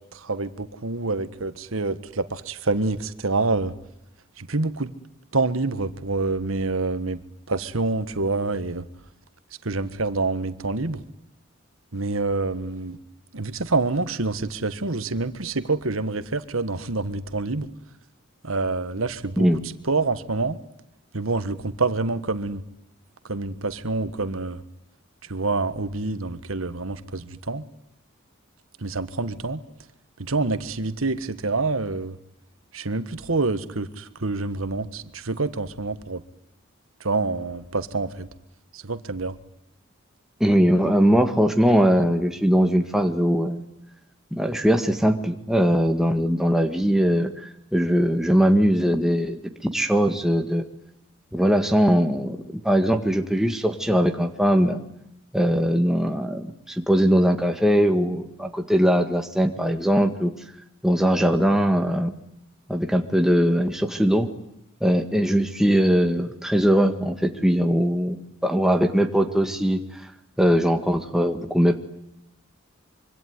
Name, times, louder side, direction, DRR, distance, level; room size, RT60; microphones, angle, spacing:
voice 1, 0.1-3.7 4.4-4.9 5.3-7.2 7.5-8.8 9.6-11.0 11.9-13.0 13.3-17.7 18.4-19.5 19.9-20.6 21.1-22.6 23.3-24.6 25.3-27.6 28.8-29.6 30.2-32.2 32.7-36.2 37.0-38.3 38.7-39.4, right 3 dB, 80° right, 12 dB, 1.5 m, -27 dB
voice 2, 40.4-43.6 44.3-50.6 51.3-54.8 55.3-60.3 60.8-62.1 62.7-64.3 64.8-68.2 68.4-69.8 70.4-71.8, equal, ahead, 5 dB, 1.9 m, -21 dB
25.5 x 24.5 x 9.6 m, 0.79 s
head